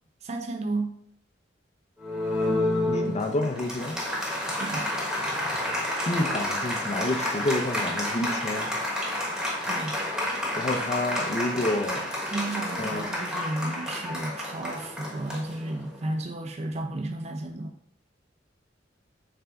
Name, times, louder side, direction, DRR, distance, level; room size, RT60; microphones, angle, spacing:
voice 1, 0.2-1.0 4.6-5.0 9.6-10.0 12.3-17.8, right 2 dB, 35° right, 4 dB, 0.4 m, -33 dB
Applause, 2.0-16.1, left 1 dB, 5° right, 0.9 m, -30 dB
voice 2, 2.8-3.9 6.1-8.7 10.6-12.0 12.8-13.0, left 1 dB, 35° left, 4 dB, 0.5 m, -29 dB
3.9 x 3.4 x 3.4 m, 0.66 s
head